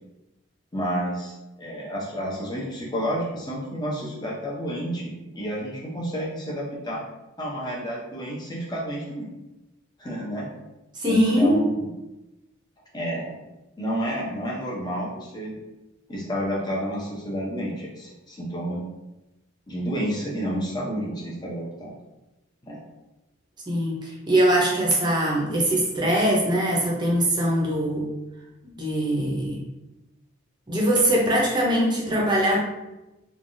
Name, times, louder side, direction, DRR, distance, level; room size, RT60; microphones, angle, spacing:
voice 1, 0.7-7.0 7.4-9.3 10.0-10.5 11.0-11.9 12.9-13.3 13.8-15.5 16.1-18.8 19.7-21.9 22.7-22.8, equal, 20° left, -4 dB, 0.6 m, -30 dB
voice 2, 11.0-11.6 23.7-28.1 28.8-29.6 30.7-32.6, right 1 dB, 20° right, -3 dB, 0.6 m, -22 dB
3.2 x 2.3 x 2.6 m, 0.98 s
head